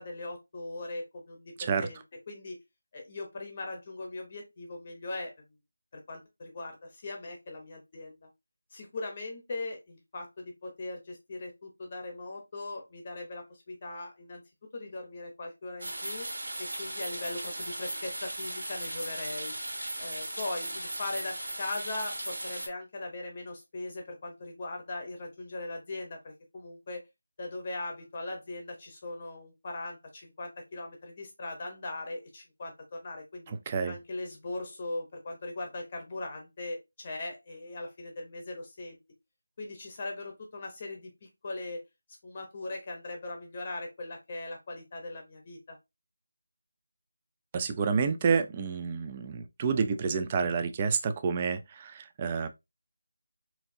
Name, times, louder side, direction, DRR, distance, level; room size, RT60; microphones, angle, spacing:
voice 1, 0.0-2.0 2.3-2.6 2.9-5.3 5.9-8.3 8.7-14.4 14.7-16.3 16.6-19.5 20.0-27.0 27.4-33.5 33.9-39.0 39.6-41.8 42.2-45.8, left 2 dB, 25° left, 0.8 m, -40 dB
sound 1, 15.8-22.7, right 1 dB, 85° right, 1.8 m, -37 dB
voice 2, 33.7-34.0 47.5-52.5, right 5 dB, 20° right, 0.3 m, -29 dB
4.5 x 2.7 x 2.7 m
figure-of-eight pair, 175°, 0 cm